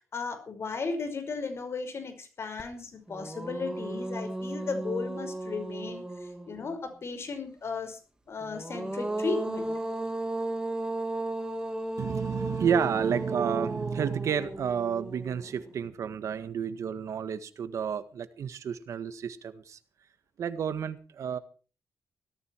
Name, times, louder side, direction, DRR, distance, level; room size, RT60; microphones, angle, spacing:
voice 1, 0.1-8.0 8.3-9.7, left 4 dB, 55° left, 8 dB, 5.4 m, -35 dB
sound 1, 2.6-2.7 3.1-6.7 8.4-15.7, right 1 dB, 15° right, 2.8 m, -35 dB
voice 2, 12.0-19.8 20.4-21.4, right 7 dB, 75° right, 12 dB, 1.7 m, -30 dB
17.5 x 14.0 x 4.7 m, 0.37 s
cardioid pair, 85°, 5 cm